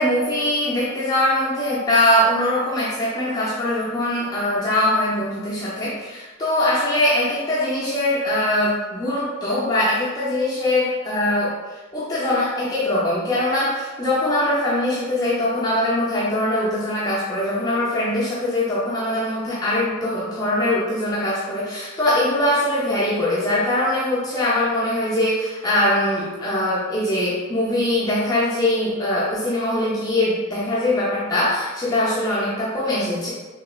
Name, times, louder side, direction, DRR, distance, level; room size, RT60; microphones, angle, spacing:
voice 1, 0.0-11.5 11.9-33.3, left 1 dB, 20° left, -8 dB, 0.5 m, -22 dB
3.1 x 3.0 x 2.3 m, 1.2 s
head